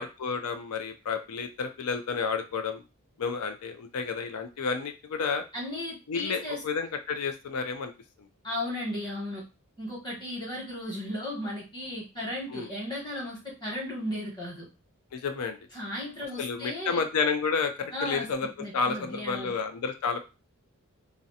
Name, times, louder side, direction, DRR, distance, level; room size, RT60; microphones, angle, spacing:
voice 1, 0.0-2.8 3.2-5.4 6.1-7.9 12.5-12.7 15.1-15.6 16.4-20.2, left 5 dB, 90° left, 6 dB, 0.4 m, -31 dB
voice 2, 5.5-6.6 8.4-9.4 9.8-14.7 15.7-17.0 17.9-19.5, left 1 dB, 20° left, -4 dB, 1.1 m, -35 dB
2.5 x 2.1 x 2.7 m, 0.29 s
head